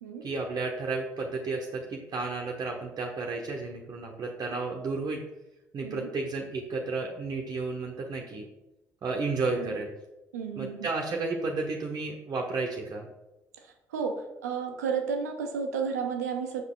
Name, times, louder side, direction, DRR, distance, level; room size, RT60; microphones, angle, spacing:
voice 1, 0.2-5.2 5.7-8.5 9.0-9.9 10.6-13.1, right 3 dB, 50° right, 0 dB, 1.0 m, -32 dB
voice 2, 10.3-10.9 13.9-14.1 14.4-16.6, right 6 dB, 90° right, 4 dB, 0.7 m, -32 dB
5.8 x 5.5 x 3.7 m, 0.98 s
hypercardioid pair, 50°, 8 cm